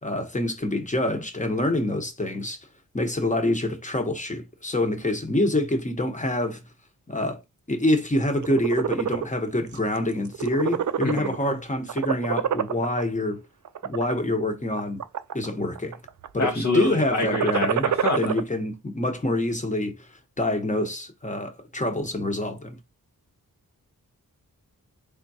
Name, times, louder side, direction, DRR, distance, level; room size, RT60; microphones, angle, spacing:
voice 1, 0.0-2.6 2.9-6.6 7.1-7.4 7.7-13.4 13.8-15.0 15.3-16.0 16.3-17.9 18.2-20.1 20.4-22.8, left 1 dB, 20° left, 1.0 m, -26 dB
Purring Guinea Pig, 8.3-9.3 9.7-10.0 10.3-11.5 11.9-13.0 13.6-14.1 14.7-15.5 15.8-16.3 17.1-18.4, right 9 dB, 55° right, 0.4 m, -26 dB
voice 2, 11.0-11.3 16.4-18.2, left 2 dB, 50° left, 0.8 m, -27 dB
3.7 x 3.5 x 2.7 m
wide cardioid pair, 70°, 36 cm